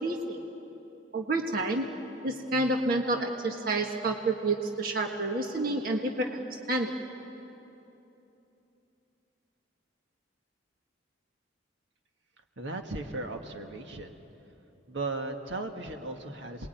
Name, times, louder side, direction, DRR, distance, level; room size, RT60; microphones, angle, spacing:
voice 1, 0.0-0.4 1.1-1.9 2.2-6.4 6.7-7.0, right 2 dB, 45° right, 2 dB, 1.5 m, -29 dB
voice 2, 12.6-14.1 14.9-16.7, right 2 dB, 70° right, 4 dB, 1.8 m, -36 dB
28.0 x 21.5 x 9.3 m, 3.0 s
head